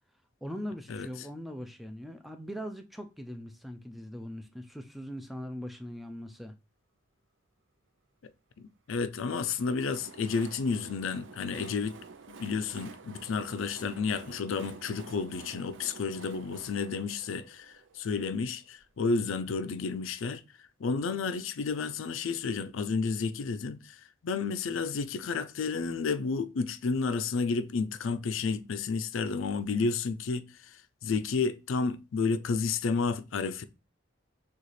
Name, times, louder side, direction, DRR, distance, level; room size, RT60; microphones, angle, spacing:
voice 1, 0.4-6.5, equal, ahead, 0.3 m, -41 dB
voice 2, 8.6-12.0 12.3-20.4 20.8-30.7 31.0-33.6, left 4 dB, 85° left, 0.4 m, -31 dB
Train, 9.2-18.9, right 4 dB, 75° right, 0.5 m, -50 dB
6.4 x 2.4 x 3.1 m
head